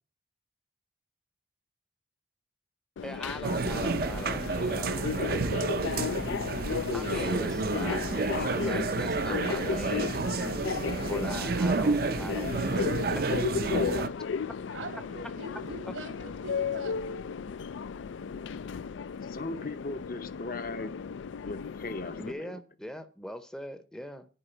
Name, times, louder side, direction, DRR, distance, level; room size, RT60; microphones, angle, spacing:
Subway metro underground, 3.0-22.3, left 6 dB, 75° left, 0.4 m, -35 dB
voice 1, 3.0-5.6 6.9-10.2 11.0-12.8 13.1-13.4 14.0-14.1 22.2-24.3, equal, 5° left, 0.7 m, -41 dB
sound 1, 3.4-14.1, right 4 dB, 50° right, 0.5 m, -30 dB
voice 2, 14.7-17.3, right 2 dB, 90° right, 2.7 m, -42 dB
voice 3, 19.2-21.0 21.4-22.6, left 2 dB, 45° left, 0.8 m, -38 dB
10.0 x 4.7 x 7.6 m
head